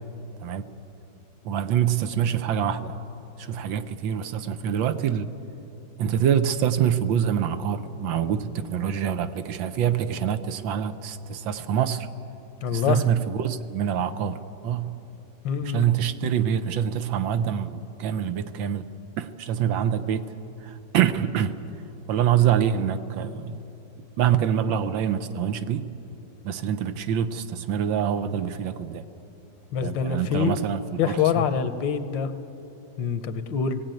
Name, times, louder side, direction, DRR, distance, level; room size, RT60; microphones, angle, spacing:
voice 1, 1.4-3.0 3.4-5.3 6.0-12.1 12.7-14.9 15.6-18.9 19.2-20.3 20.6-21.5 22.1-23.6 24.2-25.9 26.4-29.1 29.8-31.4, right 9 dB, 90° right, 10 dB, 1.6 m, -25 dB
voice 2, 12.6-13.0 15.4-15.9 29.7-30.6 31.0-32.3 33.0-33.8, left 7 dB, 80° left, 11 dB, 1.6 m, -25 dB
20.0 x 16.5 x 9.1 m, 3.0 s
omnidirectional pair, 2.0 m